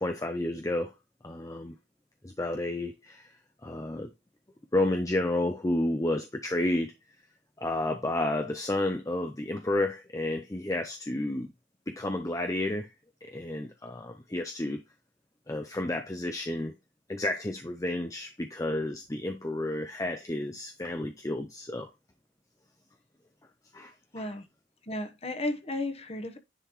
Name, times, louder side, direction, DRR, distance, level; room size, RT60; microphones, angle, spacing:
voice 1, 0.0-0.9 1.2-1.7 2.2-3.3 3.6-4.1 4.7-6.9 7.6-11.5 11.9-12.9 13.2-14.8 15.5-16.7 17.1-21.9 23.7-23.9, left 1 dB, 15° left, 0.5 m, -31 dB
voice 2, 24.1-24.5 24.8-26.4, left 1 dB, 30° left, 1.1 m, -34 dB
10.0 x 3.8 x 3.1 m
head